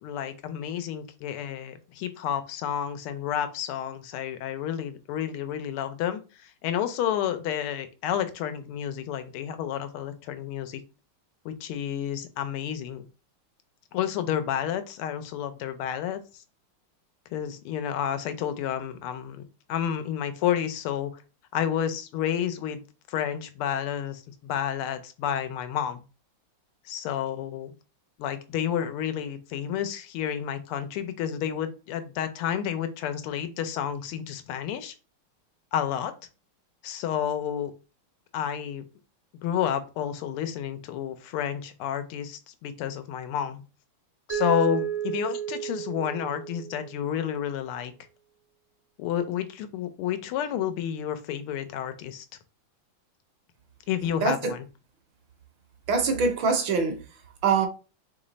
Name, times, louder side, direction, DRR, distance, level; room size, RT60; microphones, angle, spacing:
voice 1, 0.0-10.8 11.4-13.1 13.9-16.4 17.3-19.4 19.7-21.1 21.5-22.8 23.1-26.0 26.9-27.7 28.2-34.9 35.7-36.1 36.8-37.7 38.3-38.8 39.4-43.6 44.3-47.9 49.0-52.3 53.9-54.6, left 9 dB, 80° left, 1.5 m, -30 dB
Mallet percussion, 44.3-47.2, right 9 dB, 50° right, 0.8 m, -32 dB
voice 2, 54.2-54.5 55.9-57.0 57.4-57.7, right 5 dB, 70° right, 1.3 m, -23 dB
3.7 x 3.2 x 3.9 m
omnidirectional pair, 2.4 m